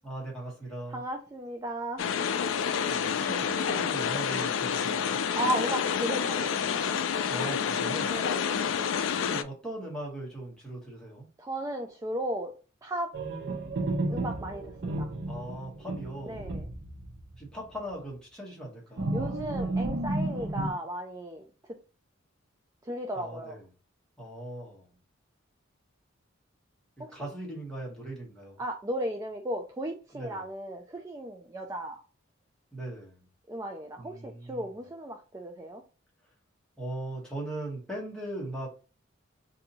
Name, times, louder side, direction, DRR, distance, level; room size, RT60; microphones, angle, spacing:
voice 1, 0.0-1.0 2.9-5.2 7.2-8.2 9.0-11.3 15.3-16.5 17.4-19.1 23.1-23.6 24.2-24.9 27.0-28.6 30.1-30.4 32.7-33.1 34.0-34.7 36.8-38.7, right 1 dB, 5° left, -3 dB, 1.2 m, -39 dB
voice 2, 0.9-2.0 5.4-7.0 8.1-8.6 11.4-12.5 12.8-13.1 14.1-15.1 16.3-16.7 19.1-21.5 22.8-23.6 27.0-27.2 28.6-32.0 33.5-35.8, right 1 dB, 15° right, 3 dB, 0.3 m, -35 dB
sound 1, 2.0-9.4, left 7 dB, 70° left, 0.3 m, -29 dB
sound 2, 13.1-17.5 17.7-17.9 19.0-20.7, right 2 dB, 60° right, 0.7 m, -32 dB
2.7 x 2.6 x 4.0 m, 0.35 s
head